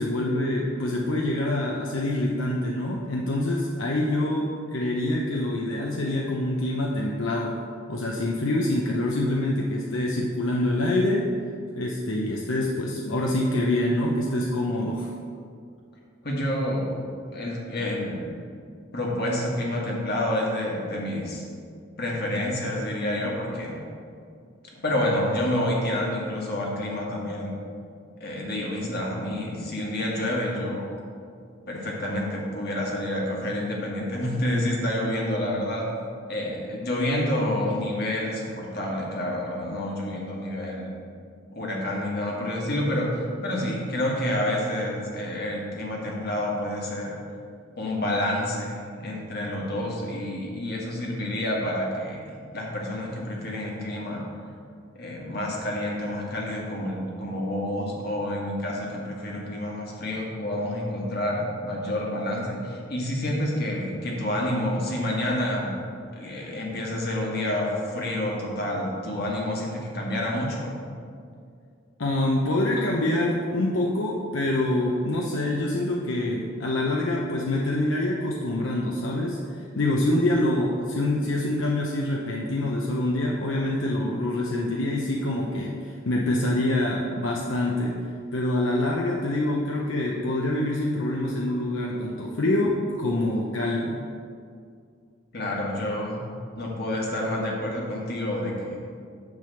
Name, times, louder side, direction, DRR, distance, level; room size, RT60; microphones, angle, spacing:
voice 1, 0.0-7.5 7.9-11.3 11.7-15.1 72.0-87.9 88.3-94.0, left 1 dB, 75° left, -2 dB, 0.7 m, -26 dB
voice 2, 16.2-18.3 18.9-21.4 22.0-23.8 24.8-27.5 28.2-30.9 31.7-35.9 36.3-41.0 41.5-47.2 47.8-54.2 54.9-65.7 66.1-70.8 95.3-96.2 96.6-98.8, left 1 dB, 50° left, -2 dB, 1.7 m, -28 dB
9.6 x 3.4 x 6.9 m, 2.3 s
head